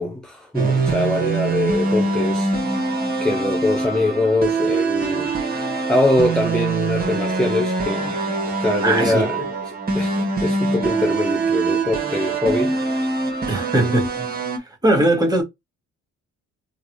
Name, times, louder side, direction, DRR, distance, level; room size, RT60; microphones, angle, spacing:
voice 1, 0.0-2.5 3.2-8.2 8.6-9.4 9.9-12.8, left 2 dB, 5° left, 0.7 m, -23 dB
sound 1, 0.5-14.6, right 3 dB, 30° right, 1.6 m, -23 dB
voice 2, 8.8-9.3 13.5-14.3 14.6-15.4, right 1 dB, 15° right, 1.9 m, -20 dB
3.8 x 2.5 x 3.0 m
cardioid pair, 90°, 30 cm